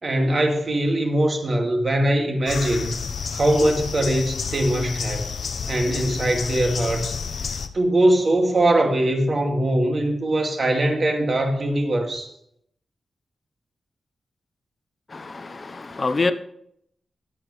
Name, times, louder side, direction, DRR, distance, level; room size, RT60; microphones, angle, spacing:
voice 1, 0.0-3.0 3.3-5.3 5.7-7.1 7.7-12.3, right 1 dB, 45° right, 2 dB, 2.3 m, -21 dB
sound 1, 2.5-7.7, left 5 dB, 65° left, 0.9 m, -30 dB
voice 2, 15.1-16.3, left 3 dB, 35° left, 10 dB, 0.9 m, -26 dB
21.0 x 7.6 x 3.2 m, 0.71 s
wide cardioid pair, 120°, 0 cm